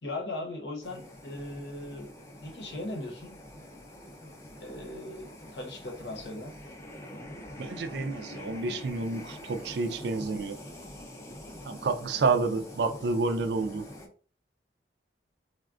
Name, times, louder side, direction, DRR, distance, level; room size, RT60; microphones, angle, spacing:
voice 1, 0.0-2.1 2.4-3.4 4.6-6.5, left 2 dB, 70° left, 0.8 m, -38 dB
sound 1, 0.8-14.1, left 1 dB, 15° left, 0.4 m, -45 dB
voice 2, 7.6-10.6 11.6-13.8, right 3 dB, 65° right, 0.4 m, -29 dB
3.4 x 2.1 x 2.4 m
head